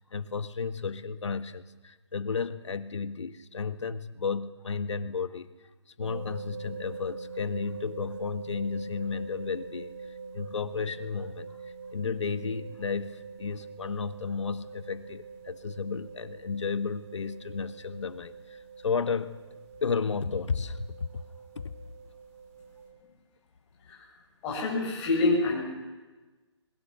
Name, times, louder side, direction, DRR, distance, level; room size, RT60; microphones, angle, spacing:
voice 1, 0.0-5.5 6.0-9.9 10.3-19.4 19.8-21.2 21.5-21.6, left 5 dB, 80° left, 10 dB, 1.6 m, -33 dB
sound 1, 6.0-22.9, right 5 dB, 30° right, 4.3 m, -44 dB
voice 2, 24.4-25.6, left 2 dB, 15° left, -3 dB, 5.8 m, -26 dB
23.0 x 22.0 x 6.9 m, 1.2 s
hypercardioid pair, 175°, 15 cm